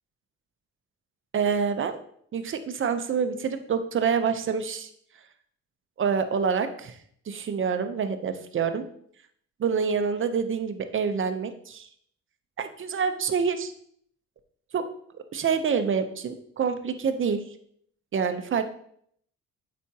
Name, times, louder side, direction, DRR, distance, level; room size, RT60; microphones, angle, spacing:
voice 1, 1.3-2.0 2.3-4.9 6.0-7.0 7.3-8.8 9.6-11.9 12.6-13.7 14.7-14.8 15.3-17.4 18.1-18.6, right 6 dB, 40° right, 8 dB, 0.8 m, -27 dB
8.2 x 5.2 x 2.9 m, 0.66 s
cardioid pair, 90°, 30 cm